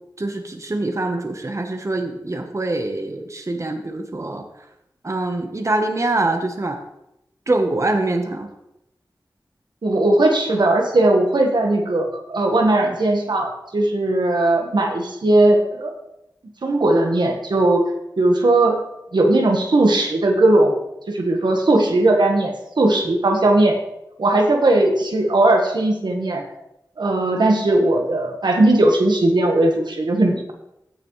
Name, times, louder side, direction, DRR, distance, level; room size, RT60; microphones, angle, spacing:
voice 1, 0.2-4.4 5.0-6.8 7.5-8.5, right 2 dB, 45° right, 5 dB, 1.0 m, -24 dB
voice 2, 9.8-15.9 16.6-17.8 18.2-18.8 19.1-20.7 21.1-23.8 24.2-26.5 27.0-30.5, right 2 dB, 90° right, 3 dB, 1.3 m, -18 dB
15.5 x 5.9 x 3.2 m, 0.84 s
wide cardioid pair, 65°, 7 cm